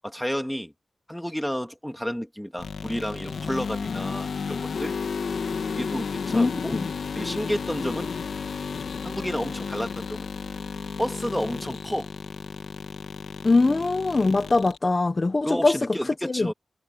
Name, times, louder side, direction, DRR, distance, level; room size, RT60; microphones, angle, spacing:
voice 1, 0.0-0.7 1.1-4.9 5.8-6.8 7.1-8.2 9.0-10.3 11.0-12.1 13.7-13.8 15.4-16.5, equal, 5° left, 2.4 m, -31 dB
sound 1, 2.6-14.8, left 5 dB, 85° left, 2.0 m, -33 dB
voice 2, 6.3-6.8 13.4-15.7 16.3-16.5, left 3 dB, 40° left, 1.3 m, -22 dB
wide cardioid pair, 80°, 0 cm